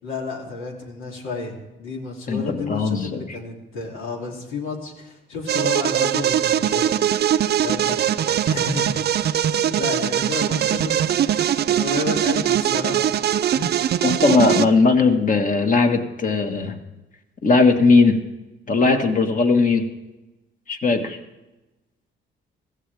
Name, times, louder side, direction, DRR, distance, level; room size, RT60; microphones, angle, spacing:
voice 1, 0.0-7.0 7.6-13.1 13.5-13.8, left 3 dB, 85° left, 0 dB, 3.0 m, -31 dB
voice 2, 2.3-3.4 14.0-16.8 17.4-18.2 18.7-19.9 20.7-21.2, left 3 dB, 40° left, 5 dB, 1.7 m, -18 dB
sound 1, 5.5-14.7, right 10 dB, 55° right, 0.5 m, -21 dB
16.0 x 15.0 x 3.5 m, 1.0 s
cardioid pair, 90°, 20 cm